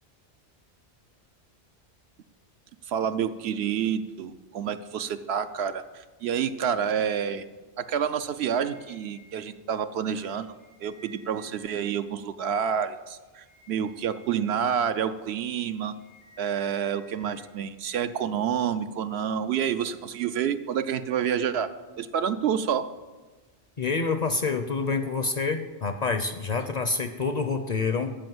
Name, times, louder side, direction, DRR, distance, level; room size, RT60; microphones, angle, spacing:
voice 1, 2.9-7.4 7.8-10.5 10.8-15.9 16.4-21.7 22.0-22.9, right 8 dB, 70° right, 11 dB, 0.8 m, -28 dB
sound 1, 8.5-9.4 10.2-11.9 13.2-14.5 15.8-17.4, left 1 dB, 85° right, 4.5 m, -55 dB
voice 2, 23.8-28.2, left 4 dB, 45° left, 8 dB, 0.6 m, -27 dB
13.5 x 5.1 x 7.8 m, 1.3 s
omnidirectional pair, 1.2 m